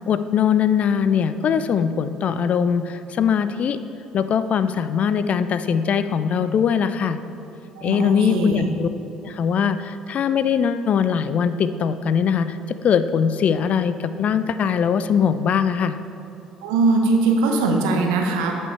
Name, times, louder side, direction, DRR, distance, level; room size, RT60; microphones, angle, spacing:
voice 1, 0.1-3.8 4.1-7.2 7.8-8.9 9.2-16.0, left 7 dB, 50° left, 12 dB, 0.4 m, -21 dB
voice 2, 7.8-8.7 16.6-18.6, right 3 dB, 75° right, 2 dB, 0.9 m, -20 dB
8.5 x 5.3 x 4.5 m, 2.8 s
hypercardioid pair, 55°, 3 cm